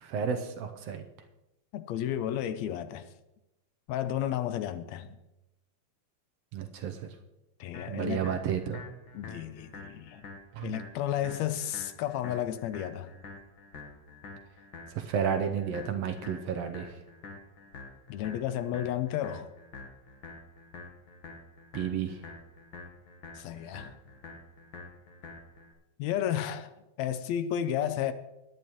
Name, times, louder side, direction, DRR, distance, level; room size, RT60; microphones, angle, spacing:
voice 1, 0.0-1.0 6.5-7.1 7.9-8.8 10.5-10.7 14.9-17.0 21.7-22.2, right 7 dB, 70° right, 1.7 m, -32 dB
voice 2, 1.7-3.1 3.9-5.2 7.6-8.2 9.1-10.3 10.6-13.2 18.1-19.5 23.4-23.9 26.0-26.7 27.0-28.1, left 11 dB, 75° left, 1.8 m, -32 dB
sound 1, 7.7-25.7, left 3 dB, 50° left, 1.8 m, -47 dB
17.0 x 10.5 x 3.1 m
omnidirectional pair, 3.3 m